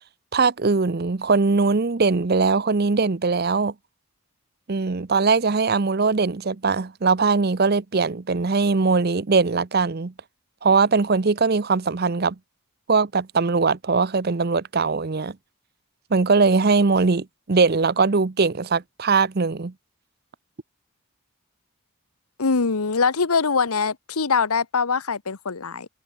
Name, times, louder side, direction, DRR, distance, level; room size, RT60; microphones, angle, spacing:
voice 1, 0.3-3.7 4.7-10.1 10.6-12.4 12.9-15.3 16.1-19.7, right 4 dB, 45° right, 0.6 m, -21 dB
voice 2, 22.4-25.9, left 5 dB, 80° left, 1.1 m, -23 dB
head